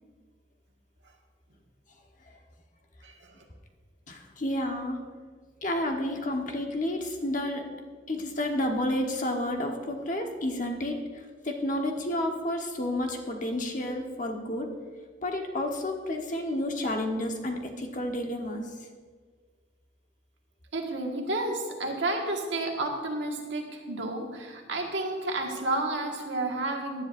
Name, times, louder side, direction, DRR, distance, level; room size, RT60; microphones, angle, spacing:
voice 1, 3.0-3.4 18.5-18.6 20.7-27.0, right 2 dB, 85° right, 1 dB, 1.7 m, -31 dB
voice 2, 4.1-5.0 5.6-7.6 8.1-14.7 15.2-18.6, left 1 dB, 45° left, 2 dB, 1.2 m, -30 dB
17.0 x 10.5 x 2.6 m, 1.5 s
head